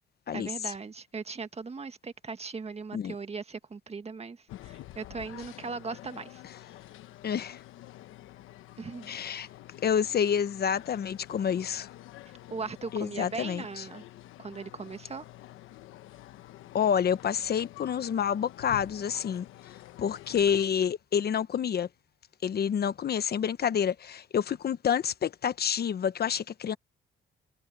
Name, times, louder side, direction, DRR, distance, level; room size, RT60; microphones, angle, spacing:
voice 1, 0.3-6.4 8.8-9.5 12.5-14.0 14.4-15.3, right 4 dB, 30° right, 1.7 m, -39 dB
sound 1, 4.5-20.7, left 15 dB, 90° left, 1.1 m, -48 dB
voice 2, 7.2-7.6 9.1-9.5 9.8-11.9 12.9-13.8 16.7-19.4 20.0-21.9 22.4-26.8, left 8 dB, 50° left, 1.0 m, -28 dB
cardioid pair, 90°, 20 cm